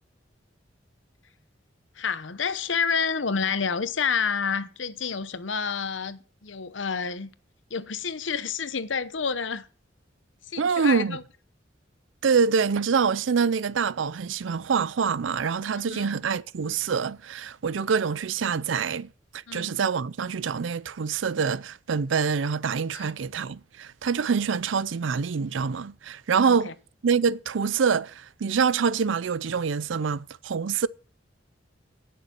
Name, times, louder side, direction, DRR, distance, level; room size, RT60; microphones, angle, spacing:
voice 1, 2.0-7.3 7.7-9.7 10.5-11.2 15.7-16.1 19.5-19.7 22.9-23.1 26.5-26.7, left 6 dB, 80° left, 0.9 m, -29 dB
voice 2, 10.6-11.2 12.2-26.7 27.0-30.9, right 6 dB, 85° right, 0.5 m, -25 dB
17.5 x 6.9 x 4.4 m
head